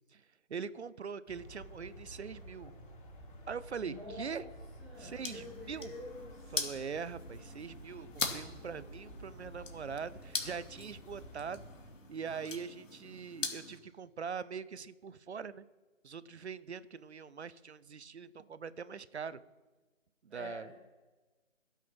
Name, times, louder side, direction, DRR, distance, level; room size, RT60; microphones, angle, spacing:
voice 1, 0.5-2.7 3.5-4.4 5.0-5.9 6.5-11.7 12.1-15.6 16.0-19.4 20.2-20.7, right 6 dB, 55° right, 17 dB, 0.7 m, -42 dB
sound 1, 1.3-11.9, equal, 40° left, 3.0 m, -51 dB
voice 2, 3.8-4.5 4.8-6.5 20.3-20.7, left 2 dB, ahead, -8 dB, 0.8 m, -47 dB
sound 2, 4.9-13.8, left 4 dB, 70° left, 2.9 m, -42 dB
13.0 x 8.3 x 6.2 m, 1.2 s
figure-of-eight pair, 160°, 39 cm